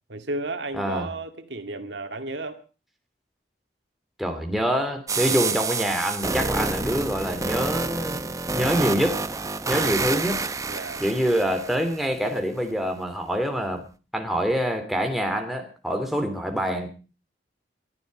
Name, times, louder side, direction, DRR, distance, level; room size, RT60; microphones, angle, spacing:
voice 1, 0.1-2.6 9.7-10.0 10.7-11.0, right 2 dB, 80° right, 8 dB, 2.0 m, -33 dB
voice 2, 0.7-1.1 4.2-9.2 9.7-10.5 11.0-13.8 14.1-16.9, equal, ahead, 3 dB, 2.9 m, -25 dB
sound 1, 5.1-12.1, right 3 dB, 20° right, 0.7 m, -28 dB
21.5 x 12.0 x 5.3 m, 0.36 s
head